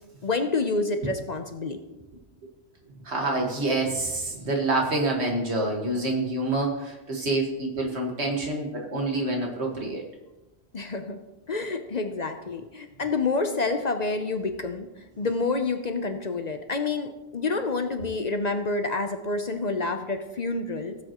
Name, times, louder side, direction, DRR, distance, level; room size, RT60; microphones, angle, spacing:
voice 1, 0.2-1.8 10.7-11.2 11.5-21.0, left 3 dB, 45° left, 7 dB, 0.7 m, -28 dB
voice 2, 3.0-10.0, right 2 dB, 75° right, 1 dB, 2.0 m, -27 dB
16.5 x 7.8 x 3.0 m, 1.0 s
omnidirectional pair, 1.1 m